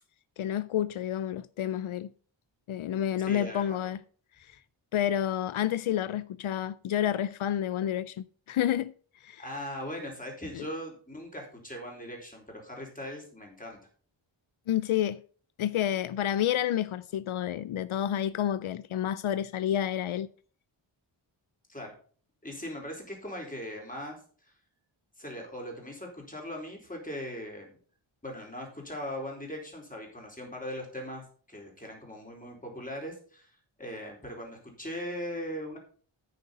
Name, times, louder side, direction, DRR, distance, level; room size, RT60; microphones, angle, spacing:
voice 1, 0.4-2.1 2.7-4.0 4.4-4.6 4.9-8.9 9.2-9.4 10.5-10.7 14.7-15.2 15.6-20.3, left 10 dB, 80° left, 0.5 m, -29 dB
voice 2, 3.2-3.8 9.4-13.8 21.7-21.9 22.4-24.5 25.2-27.8 28.2-31.2 31.5-35.8, equal, 15° left, 4.4 m, -40 dB
9.4 x 9.4 x 4.1 m
wide cardioid pair, 110°, 48 cm